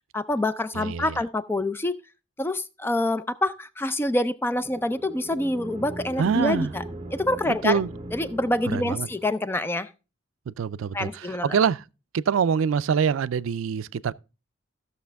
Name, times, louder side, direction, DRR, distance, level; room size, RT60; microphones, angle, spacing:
voice 1, 0.1-2.0 2.4-6.8 7.1-7.8 8.1-9.9 10.9-11.6, left 1 dB, 10° left, 0.4 m, -26 dB
voice 2, 0.7-1.1 6.2-6.7 7.5-7.9 8.7-9.1 10.5-11.8 12.1-14.1, right 6 dB, 90° right, 0.4 m, -25 dB
sound 1, 4.5-9.5, right 1 dB, 25° right, 0.8 m, -39 dB
14.5 x 6.4 x 3.4 m
head